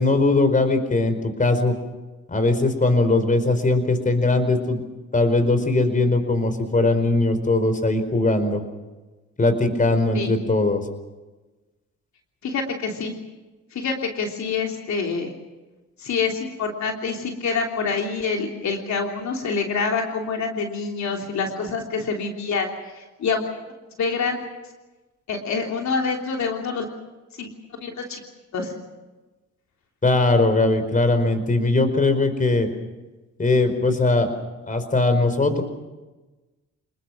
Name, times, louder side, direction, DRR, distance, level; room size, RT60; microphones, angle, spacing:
voice 1, 0.0-1.8 2.3-4.8 5.1-8.6 9.4-10.8 30.0-32.7 33.4-34.3 34.7-35.6, left 2 dB, 25° left, 9 dB, 4.6 m, -20 dB
voice 2, 12.4-13.1 13.7-15.3 16.0-22.7 22.9-23.4 24.0-24.4 25.3-26.9 27.4-27.5 27.8-28.2 28.5-28.7, left 5 dB, 65° left, 2 dB, 3.3 m, -26 dB
28.5 x 20.5 x 6.0 m, 1.2 s
cardioid pair, 90°, 30 cm